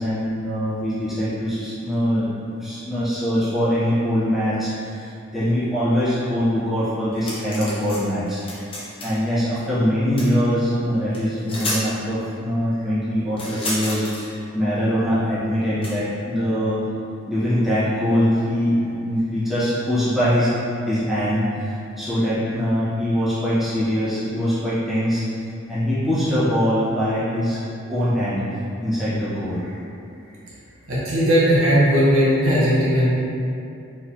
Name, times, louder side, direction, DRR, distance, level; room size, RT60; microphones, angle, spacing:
voice 1, 0.0-8.7 9.0-16.8 17.3-20.5 20.9-25.2 25.7-27.6 27.9-28.4 28.8-29.8, equal, ahead, -14 dB, 1.4 m, -23 dB
sound 1, 7.1-8.0 8.3-9.2 10.2-10.3 11.1-11.2 11.5-11.8 13.4-14.3 15.8-15.9, left 1 dB, 25° left, 0.9 m, -30 dB
voice 2, 30.9-33.1, equal, 75° right, -8 dB, 1.2 m, -17 dB
4.6 x 3.7 x 2.8 m, 2.6 s
head